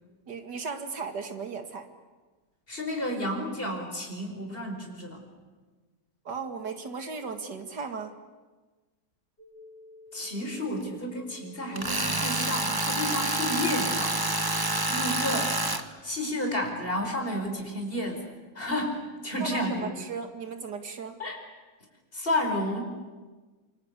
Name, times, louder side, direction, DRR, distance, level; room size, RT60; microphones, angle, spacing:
voice 1, 0.3-1.9 6.2-8.2 19.4-21.2, right 5 dB, 90° right, 7 dB, 2.7 m, -36 dB
voice 2, 2.7-5.2 10.1-15.6 16.0-19.9 21.2-21.4 22.1-22.8, left 1 dB, 30° left, 3 dB, 5.2 m, -31 dB
sound 1, 9.4-14.8, left 3 dB, 80° left, 4.5 m, -51 dB
Tools, 11.8-15.8, right 2 dB, 15° right, 1.2 m, -28 dB
27.5 x 25.0 x 8.3 m, 1.3 s
omnidirectional pair, 1.8 m